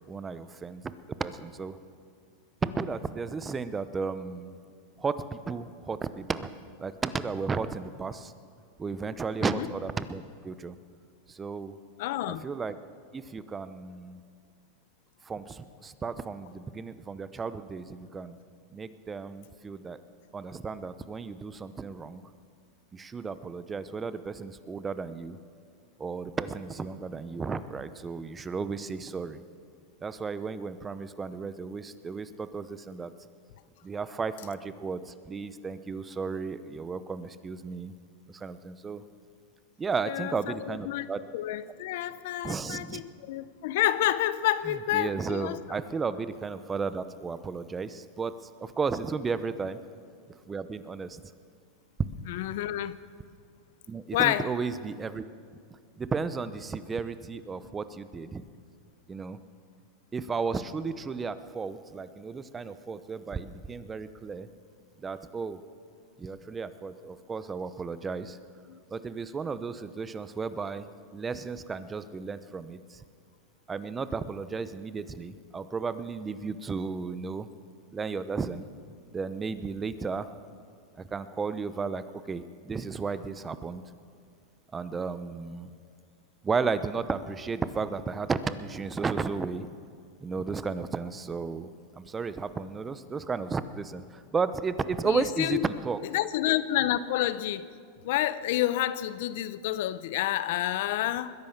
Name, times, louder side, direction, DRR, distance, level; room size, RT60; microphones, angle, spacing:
voice 1, 0.1-0.8 1.2-1.8 2.6-4.6 5.0-6.5 6.8-8.3 8.8-10.8 11.3-11.7 12.3-12.8 13.1-14.2 15.3-18.4 18.7-20.0 20.3-22.2 22.9-25.4 26.0-29.4 30.0-33.1 33.8-37.9 38.3-39.0 39.8-41.2 42.4-43.0 44.9-48.3 48.6-49.8 50.5-51.2 53.9-55.2 56.0-58.4 59.1-59.4 60.1-64.5 65.0-65.6 66.2-68.4 68.9-70.9 71.1-73.0 73.7-77.5 77.9-78.6 79.1-80.3 81.0-83.8 84.7-85.7 86.4-89.7 90.2-91.7 92.0-96.0, right 5 dB, 20° right, 13 dB, 0.8 m, -34 dB
voice 2, 12.0-12.5 40.1-41.1 41.3-45.6 52.3-53.0 54.1-54.5 68.7-68.8 95.0-95.7 96.1-97.7 98.0-101.3, left 13 dB, 70° left, 15 dB, 0.7 m, -29 dB
20.5 x 10.5 x 6.7 m, 2.1 s
hypercardioid pair, 115°, 0 cm